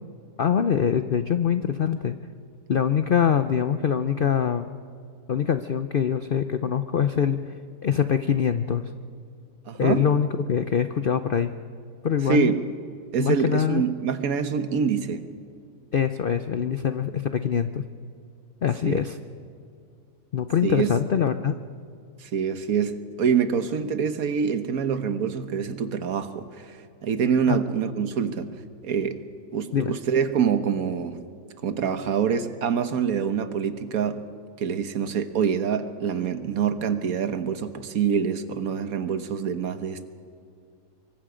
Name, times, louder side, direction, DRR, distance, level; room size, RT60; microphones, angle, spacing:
voice 1, 0.4-2.2 2.7-4.7 5.3-7.4 7.8-8.9 9.8-11.5 12.0-12.5 13.2-13.8 15.9-17.8 18.6-19.2 20.3-21.6 27.5-27.6 29.7-29.9, left 8 dB, 70° left, 10 dB, 0.5 m, -24 dB
voice 2, 9.7-10.0 12.2-12.7 13.1-15.3 18.8-19.0 20.6-20.9 22.2-28.5 28.8-29.2 29.5-31.3 31.6-34.2 34.6-40.1, right 7 dB, 60° right, 10 dB, 1.5 m, -25 dB
25.0 x 23.0 x 5.1 m, 2.4 s
omnidirectional pair, 1.7 m